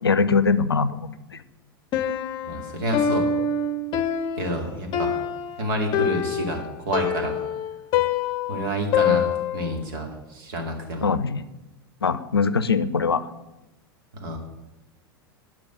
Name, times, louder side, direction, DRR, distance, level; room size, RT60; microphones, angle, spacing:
voice 1, 0.0-1.1 9.1-9.2 11.0-11.4 12.0-13.2, left 5 dB, 85° left, 15 dB, 0.5 m, -22 dB
Piano, 1.9-9.8, left 7 dB, 40° left, 0.7 m, -25 dB
voice 2, 2.4-3.3 4.4-5.2 5.6-7.3 8.5-11.1 14.1-14.4, right 1 dB, 60° right, 2 dB, 2.5 m, -29 dB
10.0 x 6.1 x 6.2 m, 1.0 s
figure-of-eight pair, 90°, 12 cm